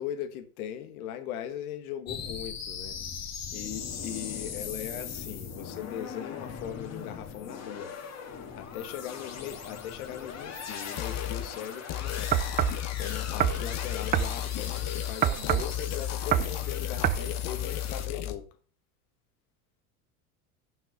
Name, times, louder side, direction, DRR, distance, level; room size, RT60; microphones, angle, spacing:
voice 1, 0.0-2.9 3.5-7.9 8.6-12.3 13.0-18.4, left 10 dB, 85° left, 1.5 m, -39 dB
sound 1, 2.1-18.1, left 6 dB, 40° left, 2.1 m, -40 dB
sound 2, 11.0-11.5 11.9-15.2 15.4-18.4, left 12 dB, 65° left, 1.3 m, -33 dB
sound 3, 12.3-12.8 13.4-13.6 14.1-14.3 15.2-15.7 16.3-16.6 17.0-17.3, right 11 dB, 25° right, 0.3 m, -26 dB
7.6 x 5.9 x 6.5 m
supercardioid pair, 105°, 42 cm